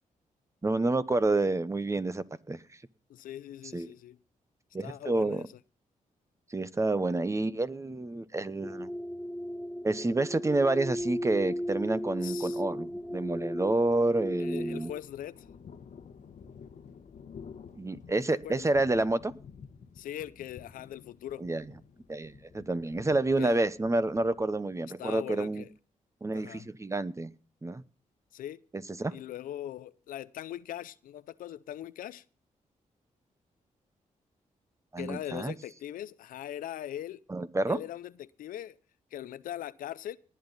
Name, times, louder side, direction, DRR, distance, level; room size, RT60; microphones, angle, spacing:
voice 1, 0.6-2.6 3.7-3.9 4.7-5.4 6.5-8.9 9.8-14.9 17.8-19.3 21.4-21.6 22.1-25.6 26.2-27.3 27.6-27.8 28.7-29.1 34.9-35.5 37.3-37.8, right 2 dB, 20° right, 0.9 m, -29 dB
voice 2, 3.1-4.2 4.8-5.5 12.2-12.6 14.4-15.4 18.2-18.6 20.0-21.5 23.4-23.6 25.0-25.7 26.3-26.7 28.3-28.6 29.1-32.2 35.0-37.2 37.7-38.8 39.1-40.2, left 12 dB, 90° left, 0.5 m, -41 dB
sound 1, 8.6-15.0, equal, ahead, 1.8 m, -36 dB
Thunder, 11.0-25.8, left 6 dB, 65° left, 1.2 m, -52 dB
19.0 x 9.0 x 4.0 m
cardioid pair, 65°, 14 cm